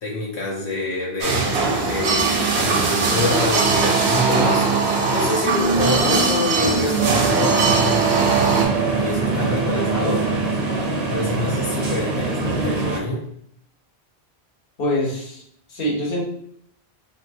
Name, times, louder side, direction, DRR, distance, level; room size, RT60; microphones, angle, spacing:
voice 1, 0.0-8.2 8.8-10.3 11.1-13.3, left 2 dB, 85° left, -3 dB, 0.9 m, -26 dB
sound 1, 1.2-8.7, right 4 dB, 85° right, 0.9 m, -20 dB
sound 2, 7.0-13.0, right 4 dB, 50° right, 0.5 m, -23 dB
voice 2, 14.8-15.4 15.7-16.2, left 1 dB, 65° left, -3 dB, 1.2 m, -24 dB
3.3 x 2.7 x 2.6 m, 0.67 s
omnidirectional pair, 1.1 m